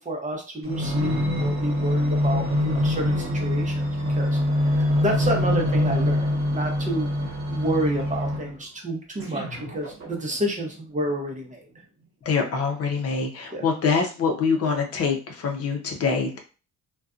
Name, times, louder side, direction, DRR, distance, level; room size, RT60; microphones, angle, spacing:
voice 1, 0.0-4.4 4.6-7.1 7.5-11.7 13.5-13.6, right 1 dB, 25° right, 2 dB, 0.7 m, -30 dB
sound 1, 0.6-8.6 9.2-10.5 11.1-11.2, left 1 dB, 45° right, 1.0 m, -25 dB
voice 2, 12.2-16.4, left 5 dB, 50° left, 2 dB, 0.6 m, -25 dB
2.5 x 2.3 x 2.4 m, 0.35 s
cardioid pair, 90°, 30 cm